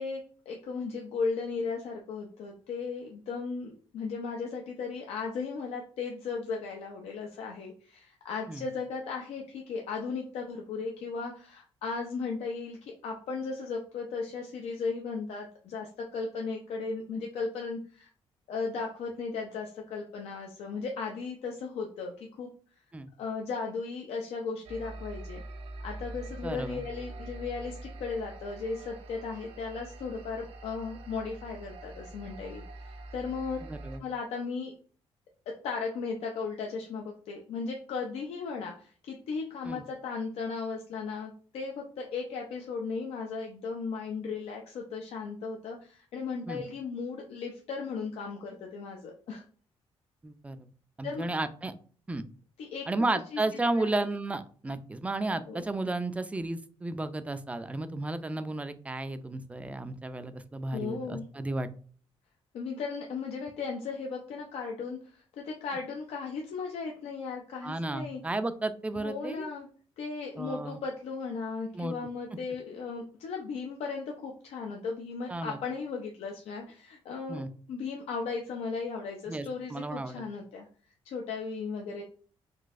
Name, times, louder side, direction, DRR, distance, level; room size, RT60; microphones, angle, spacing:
voice 1, 0.0-18.1 18.5-22.5 23.2-25.4 25.8-33.6 34.0-34.7 35.5-49.4 51.0-51.3 52.6-53.4 53.7-53.9 55.5-55.6 60.7-61.2 62.5-68.2 69.0-69.7 70.0-77.4 77.7-80.7 81.0-82.0, left 4 dB, 80° left, 1 dB, 0.6 m, -36 dB
sound 1, 24.6-34.0, right 2 dB, 70° right, 0.6 m, -44 dB
voice 2, 26.4-26.8 33.7-34.0 39.6-39.8 46.5-46.6 50.2-50.6 51.0-51.7 52.1-52.2 52.9-61.7 67.6-69.5 70.4-70.8 71.7-71.9 75.3-75.6 77.3-77.5 79.3-80.2, right 2 dB, 15° right, 11 dB, 0.3 m, -33 dB
3.9 x 2.7 x 2.4 m, 0.43 s
cardioid pair, 125°, 10 cm